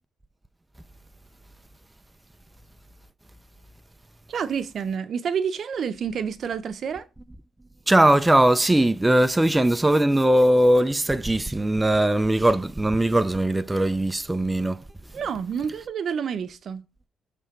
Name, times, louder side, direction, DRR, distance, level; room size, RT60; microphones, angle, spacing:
voice 1, 4.3-7.1 15.1-16.8, right 7 dB, 60° right, 0.7 m, -29 dB
voice 2, 7.9-14.8, right 1 dB, 10° right, 0.4 m, -20 dB
7.6 x 3.3 x 4.4 m
cardioid pair, 90°, 0 cm